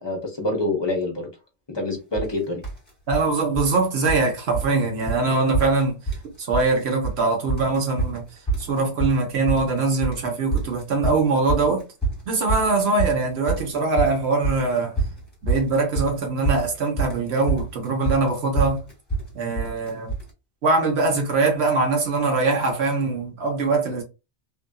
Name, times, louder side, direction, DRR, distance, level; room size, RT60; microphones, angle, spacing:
voice 1, 0.0-1.3 1.7-2.6, left 2 dB, 25° left, 0.7 m, -26 dB
sound 1, 2.2-2.3 2.6-3.3 3.6-4.3 4.5-4.8 5.1-5.2 5.5-6.3 6.5-7.2 7.5-20.3, right 3 dB, 10° left, 1.3 m, -26 dB
voice 2, 3.1-6.0 6.4-8.2 8.6-11.8 12.3-14.9 15.4-18.8 19.3-20.1 20.6-24.0, right 3 dB, 65° right, 1.2 m, -22 dB
2.8 x 2.5 x 2.2 m
omnidirectional pair, 1.2 m